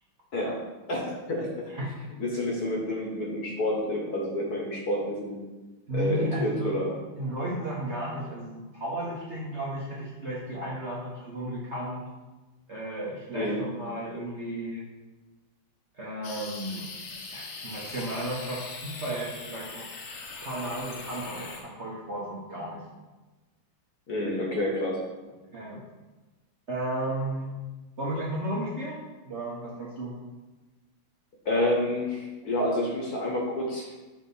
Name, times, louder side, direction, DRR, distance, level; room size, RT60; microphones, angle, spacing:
voice 1, 0.9-1.9 2.2-5.4 5.9-6.9 13.3-13.6 24.1-25.0 31.4-33.9, left 1 dB, 55° left, -1 dB, 1.4 m, -29 dB
voice 2, 5.9-6.7 7.2-12.1 12.7-14.8 15.9-16.9 17.3-19.9 20.4-22.8 25.5-25.8 26.7-27.6 28.0-30.2, right 1 dB, 45° right, -6 dB, 0.9 m, -34 dB
sound 1, 16.2-21.6, left 4 dB, 85° left, 1.8 m, -40 dB
5.1 x 4.0 x 5.4 m, 1.2 s
omnidirectional pair, 2.3 m